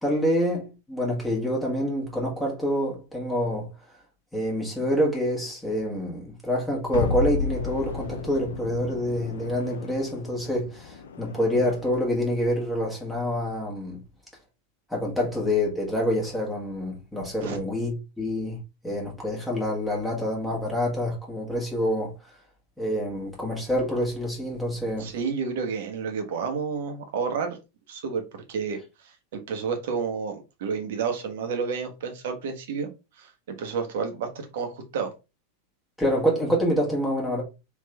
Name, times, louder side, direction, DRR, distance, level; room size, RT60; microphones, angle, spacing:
voice 1, 0.0-3.7 4.3-14.0 14.9-22.1 22.8-25.1 36.0-37.4, equal, 5° left, 1.4 m, -27 dB
sound 1, 6.9-12.0, left 5 dB, 65° left, 0.5 m, -33 dB
voice 2, 25.0-27.6 27.9-28.8 29.0-32.9 33.2-35.1, right 5 dB, 55° right, 1.0 m, -30 dB
3.5 x 3.1 x 3.4 m
figure-of-eight pair, 90°, 0 cm